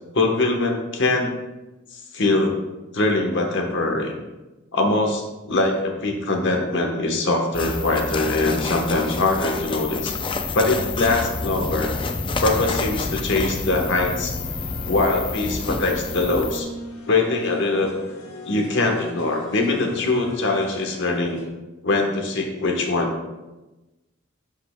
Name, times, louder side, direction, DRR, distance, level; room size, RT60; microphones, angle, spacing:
voice 1, 0.1-1.3 1.9-2.6 2.9-4.1 4.7-10.1 10.5-11.9 12.4-14.3 14.9-16.7 17.1-18.0 18.5-21.4 21.8-23.1, left 2 dB, 55° left, 2 dB, 1.1 m, -22 dB
sound 1, 7.5-16.6, left 3 dB, 25° left, 0.4 m, -28 dB
sound 2, 14.4-21.5, equal, 90° left, 1.1 m, -41 dB
12.0 x 5.5 x 2.2 m, 1.1 s
head